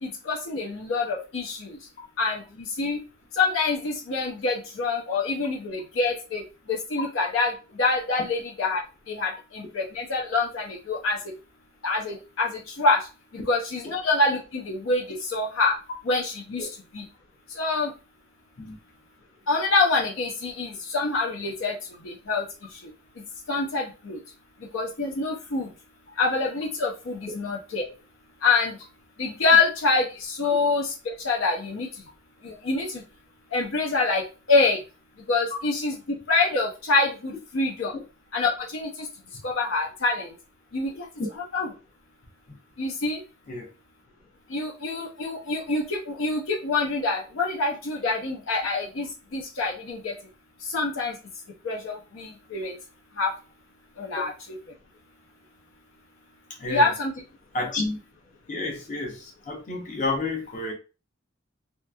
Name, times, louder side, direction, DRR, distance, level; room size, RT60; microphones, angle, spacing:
voice 1, 0.0-1.8 2.2-3.0 3.3-11.3 11.8-13.1 13.5-15.8 16.0-16.7 16.9-17.0 17.5-17.9 19.5-22.9 23.5-24.2 24.7-25.7 26.2-27.9 28.4-28.8 29.2-32.0 32.4-33.0 33.5-34.8 35.3-37.9 38.3-39.1 39.4-40.4 40.7-41.1 41.5-41.7 42.8-43.2 44.5-50.1 50.6-51.2 51.6-52.8 53.2-53.3 54.0-54.6 56.7-57.1, left 3 dB, 90° left, -1 dB, 0.6 m, -26 dB
voice 2, 56.6-56.9 57.5-58.0 58.5-60.7, left 2 dB, 40° left, 0 dB, 0.8 m, -30 dB
2.9 x 2.5 x 2.2 m, 0.31 s
head